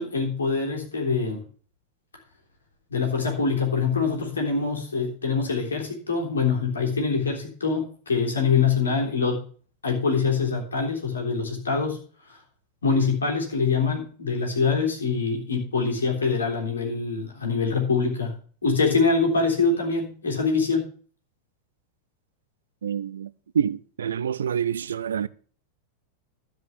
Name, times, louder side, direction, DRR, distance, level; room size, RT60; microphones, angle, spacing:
voice 1, 0.0-1.4 2.9-9.4 9.8-12.0 12.8-18.3 18.6-20.9, left 4 dB, 70° left, 3.5 m, -24 dB
voice 2, 22.8-23.3 23.5-25.3, right 8 dB, 65° right, 0.5 m, -27 dB
12.5 x 5.2 x 7.1 m
figure-of-eight pair, 90°, 0 cm